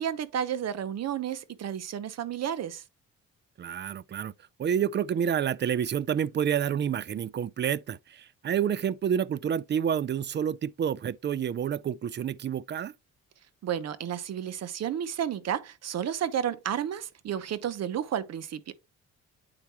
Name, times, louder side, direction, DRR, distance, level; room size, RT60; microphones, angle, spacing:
voice 1, 0.0-2.8 13.6-18.7, right 9 dB, 60° right, 0.9 m, -32 dB
voice 2, 3.6-4.3 4.6-12.9, right 8 dB, 35° right, 0.4 m, -29 dB
8.9 x 4.6 x 2.9 m
cardioid pair, 90°, 30 cm